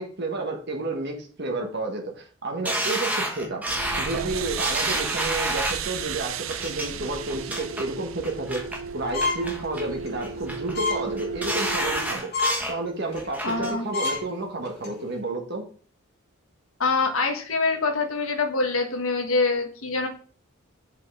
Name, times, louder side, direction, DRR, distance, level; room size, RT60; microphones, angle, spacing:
voice 1, 0.0-3.7 4.0-8.6 8.9-12.3 12.7-15.6, right 2 dB, 50° right, 2 dB, 1.4 m, -31 dB
sound 1, 2.7-5.9 6.5-6.9 7.3-7.8 8.2-8.8 9.2-9.9 10.2-10.7 11.2-12.8 13.1-13.7 14.1-14.2, right 1 dB, 5° right, 1.1 m, -29 dB
sound 2, 3.7-12.2, right 6 dB, 70° right, 0.6 m, -34 dB
sound 3, 9.1-9.5 9.9-10.1 10.7-11.0 11.4-11.6 12.0-12.1 12.3-12.6 13.1-13.3 13.6-13.7 13.9-14.2 14.6-14.9, left 3 dB, 45° left, 2.5 m, -27 dB
voice 2, 13.4-13.9 16.8-20.1, left 3 dB, 75° left, 4 dB, 1.3 m, -25 dB
5.7 x 5.2 x 4.8 m, 0.43 s
head